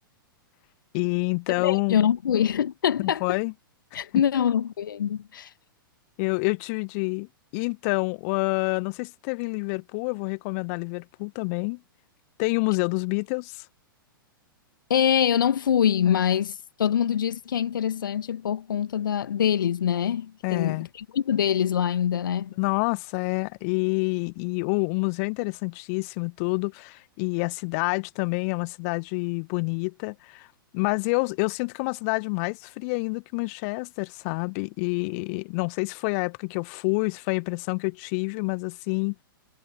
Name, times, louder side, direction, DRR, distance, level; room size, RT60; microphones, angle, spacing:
voice 1, 0.9-2.0 3.0-3.5 3.9-4.0 6.2-7.3 7.5-11.8 12.4-13.6 20.4-20.9 22.6-30.5 30.7-39.1, left 32 dB, 40° left, 1.1 m, -28 dB
voice 2, 1.6-3.4 3.9-5.5 14.9-22.5, left 9 dB, 65° left, 1.5 m, -24 dB
figure-of-eight pair, 105°, 12 cm